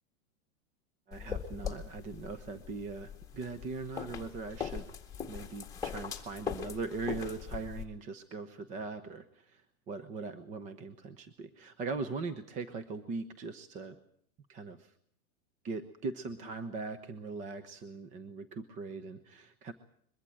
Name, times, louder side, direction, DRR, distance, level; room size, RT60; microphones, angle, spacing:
sound 1, 1.1-7.8, left 7 dB, 10° left, 1.9 m, -41 dB
voice 1, 1.1-4.9 5.3-14.0 14.5-14.9 15.6-19.7, right 4 dB, 15° right, 10 dB, 0.8 m, -40 dB
22.5 x 15.0 x 9.1 m, 0.64 s
supercardioid pair, 155°, 42 cm